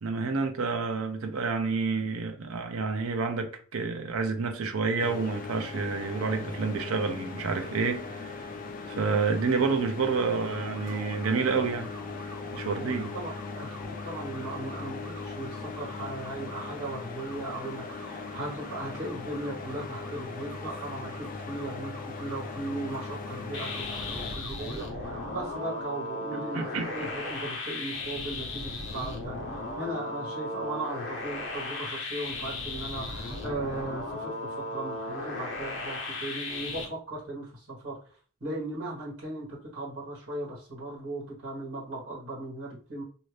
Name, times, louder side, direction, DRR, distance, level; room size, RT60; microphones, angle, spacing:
voice 1, 0.0-8.5 8.9-11.9 12.5-13.1 26.3-26.9, right 4 dB, 80° right, 0.5 m, -29 dB
sound 1, 5.0-24.4, left 4 dB, 40° left, 0.4 m, -39 dB
sound 2, 10.2-25.8, equal, 30° right, 1.1 m, -48 dB
voice 2, 13.1-13.7 14.0-38.0 38.4-43.0, right 2 dB, 60° right, 1.3 m, -37 dB
sound 3, 23.5-36.8, left 2 dB, 60° left, 0.8 m, -36 dB
2.6 x 2.6 x 3.1 m
head